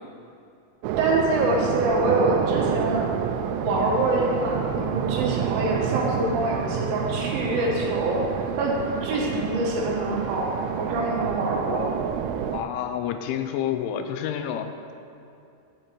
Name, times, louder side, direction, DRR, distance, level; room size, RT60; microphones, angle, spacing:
sound 1, 0.8-12.6, right 8 dB, 80° right, 2.8 m, -28 dB
voice 1, 1.0-3.1 3.6-8.2 8.6-10.5 10.8-11.9, right 1 dB, 60° right, -3 dB, 2.9 m, -25 dB
voice 2, 12.5-14.7, left 9 dB, 80° left, 8 dB, 3.0 m, -29 dB
10.5 x 7.8 x 8.0 m, 2.6 s
omnidirectional pair, 5.7 m